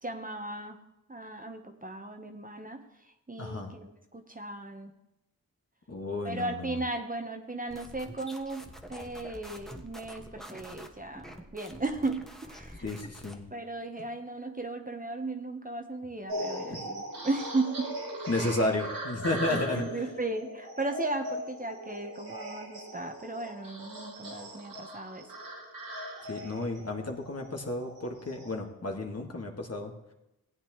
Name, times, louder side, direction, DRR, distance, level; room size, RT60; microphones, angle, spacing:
voice 1, 0.0-0.8 1.1-2.8 3.3-4.9 6.2-12.8 13.5-17.9 18.2-18.3 19.5-25.3, right 2 dB, 25° right, 5 dB, 1.1 m, -36 dB
voice 2, 3.4-3.7 5.9-6.8 12.8-13.4 14.0-14.1 16.7-16.8 18.3-19.8 26.3-29.9, left 2 dB, 45° left, 1 dB, 1.9 m, -32 dB
sound 1, 7.7-13.4, equal, ahead, 1.2 m, -47 dB
sound 2, 16.3-28.5, right 1 dB, 85° right, 2.4 m, -40 dB
16.0 x 8.6 x 3.1 m, 0.89 s
cardioid pair, 40°, 35 cm